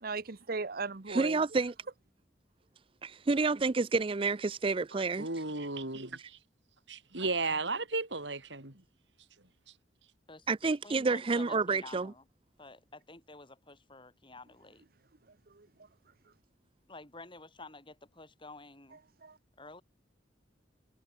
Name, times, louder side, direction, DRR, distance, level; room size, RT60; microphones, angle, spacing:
voice 1, 0.0-1.4 15.5-15.7 19.2-19.4, right 4 dB, 55° right, 1.0 m, -37 dB
voice 2, 1.1-1.7 3.0-5.3 10.5-12.1, right 4 dB, 30° right, 0.4 m, -29 dB
voice 3, 4.9-6.4 6.9-8.8, right 3 dB, 75° right, 5.1 m, -35 dB
voice 4, 10.3-12.2 12.6-14.8 16.9-19.0 19.6-19.8, left 3 dB, 25° left, 6.1 m, -50 dB
head